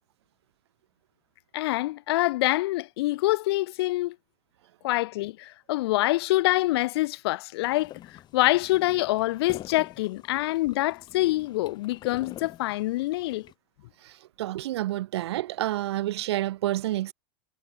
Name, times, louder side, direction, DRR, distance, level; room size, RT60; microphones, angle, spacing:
voice 1, 1.5-4.2 4.8-13.5, left 18 dB, 70° left, 0.9 m, -26 dB
sound 1, 7.6-13.5, left 12 dB, 30° left, 2.1 m, -47 dB
voice 2, 14.0-17.1, right 15 dB, 80° right, 1.8 m, -29 dB
supercardioid pair, 140°, 14 cm